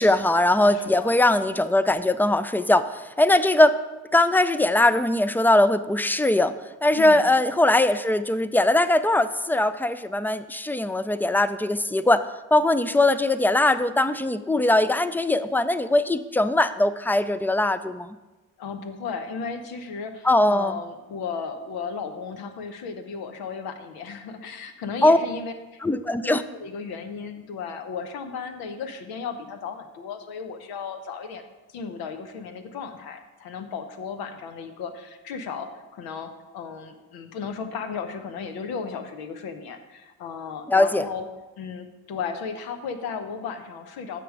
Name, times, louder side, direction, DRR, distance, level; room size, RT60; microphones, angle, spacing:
voice 1, 0.0-3.8 4.1-6.5 6.8-18.2 20.2-20.8 25.0-25.2 25.8-26.4 40.7-41.0, left 1 dB, 5° left, 13 dB, 0.3 m, -21 dB
voice 2, 0.6-1.1 6.9-7.3 18.6-31.4 31.7-41.3 41.6-44.2, left 5 dB, 90° left, 7 dB, 0.8 m, -35 dB
6.7 x 6.1 x 4.7 m, 1.1 s
supercardioid pair, 55°, 36 cm